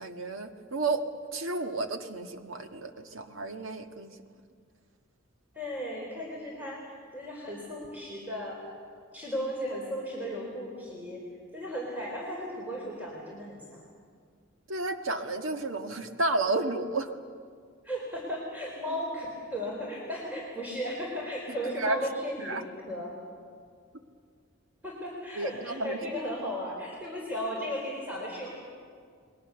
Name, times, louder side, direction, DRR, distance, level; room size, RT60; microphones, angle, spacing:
voice 1, 0.0-4.2 14.7-17.1 21.5-22.0 22.4-22.6 25.3-26.0, right 2 dB, 80° right, 6 dB, 1.6 m, -32 dB
voice 2, 5.5-8.6 9.1-11.2 11.5-13.8 17.8-22.6 22.8-23.1 24.8-28.5, equal, 10° right, -3 dB, 4.0 m, -35 dB
29.0 x 21.5 x 6.9 m, 2.1 s
head